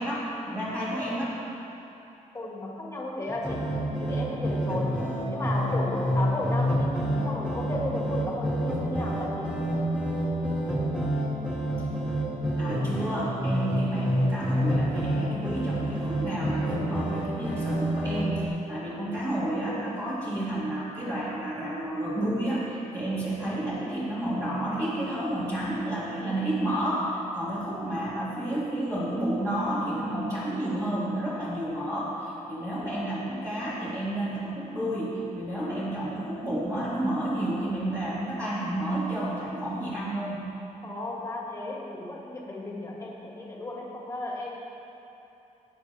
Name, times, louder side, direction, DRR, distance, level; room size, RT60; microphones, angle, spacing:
voice 1, 0.0-1.4 12.6-40.4, right 1 dB, 20° right, -10 dB, 2.4 m, -30 dB
voice 2, 2.3-3.7 4.0-5.0 5.3-9.5 40.8-44.6, left 1 dB, 20° left, -3 dB, 2.0 m, -34 dB
sound 1, 3.3-18.5, equal, 5° right, 2.5 m, -28 dB
19.0 x 9.4 x 3.4 m, 3.0 s
wide cardioid pair, 155°, 14 cm